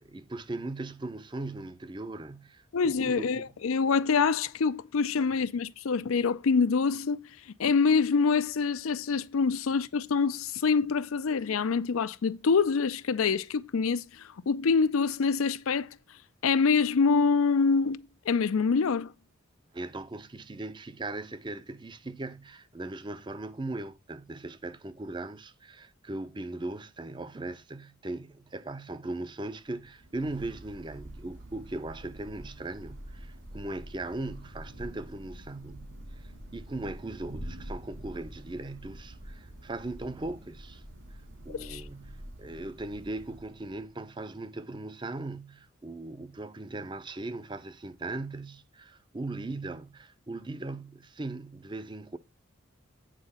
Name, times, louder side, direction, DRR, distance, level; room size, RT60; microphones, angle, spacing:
voice 1, 0.0-3.5 19.7-40.8 41.1-41.2 41.5-52.2, right 2 dB, 20° right, 0.5 m, -39 dB
voice 2, 2.7-7.2 7.6-15.9 16.4-19.1 41.5-41.8, left 5 dB, 85° left, 0.5 m, -26 dB
Thunder / Rain, 29.6-44.0, right 1 dB, 70° right, 4.6 m, -46 dB
9.1 x 4.0 x 5.5 m
head